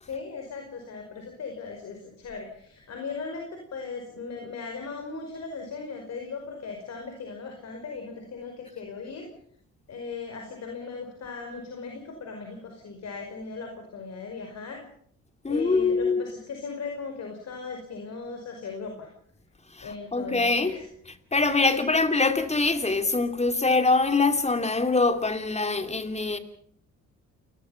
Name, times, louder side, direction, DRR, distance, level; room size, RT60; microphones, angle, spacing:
voice 1, 0.0-9.3 9.9-14.8 15.5-19.1 19.8-20.9 21.4-21.8, left 4 dB, 60° left, 5.3 m, -38 dB
voice 2, 15.4-16.2 19.7-20.8 21.1-26.4, left 3 dB, 20° left, 2.8 m, -24 dB
28.5 x 20.5 x 5.8 m
cardioid pair, 90°, 30 cm